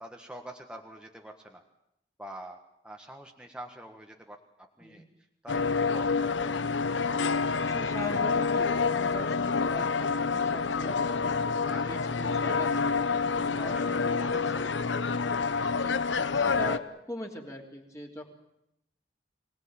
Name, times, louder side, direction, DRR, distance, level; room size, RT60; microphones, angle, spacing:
voice 1, 0.0-1.6 2.2-2.6 2.8-5.0 5.4-6.5 11.6-11.9 13.4-15.0 15.6-15.8, right 1 dB, 5° right, 3 dB, 1.5 m, -46 dB
sound 1, 5.5-16.8, left 5 dB, 90° left, 1.0 m, -28 dB
voice 2, 7.6-11.4 11.7-14.4 15.7-16.0 16.3-18.2, left 1 dB, 15° left, 1 dB, 3.1 m, -41 dB
25.0 x 18.5 x 8.8 m, 0.81 s
head